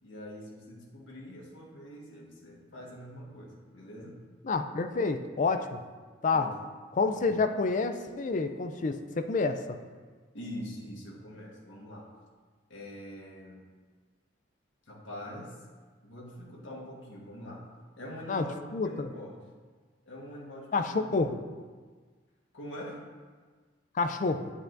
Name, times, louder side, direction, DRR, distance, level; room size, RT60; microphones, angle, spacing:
voice 1, 0.0-4.2 6.3-6.6 7.1-7.3 10.3-12.1 12.7-13.6 14.9-15.5 16.0-17.7 18.0-19.4 20.0-21.1 22.5-23.0, equal, 80° left, -2 dB, 1.5 m, -44 dB
voice 2, 4.4-5.8 6.2-6.5 6.9-9.8 18.3-18.5 18.7-19.1 20.7-21.4 24.0-24.5, left 4 dB, 40° left, 8 dB, 0.4 m, -28 dB
8.9 x 7.2 x 2.6 m, 1.5 s
head